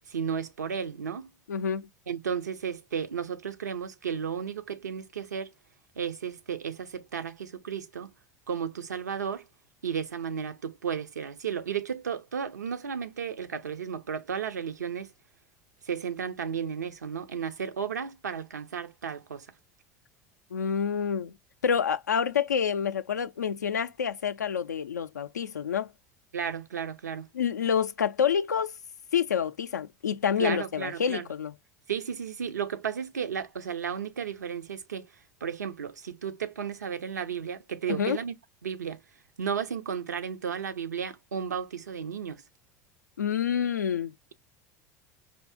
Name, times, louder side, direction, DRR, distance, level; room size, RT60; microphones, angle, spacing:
voice 1, 0.1-1.3 2.1-5.5 6.0-8.1 8.5-9.4 9.8-15.1 15.8-19.5 26.3-27.3 30.4-31.3 31.9-35.1 35.4-38.3 38.6-39.0 39.4-42.4, right 7 dB, 80° right, 0.5 m, -33 dB
voice 2, 1.5-1.9 20.5-21.3 21.6-25.9 27.3-28.8 29.1-31.5 38.0-38.2 43.2-44.1, left 7 dB, 85° left, 0.4 m, -28 dB
4.5 x 2.6 x 2.2 m
figure-of-eight pair, 70°, 9 cm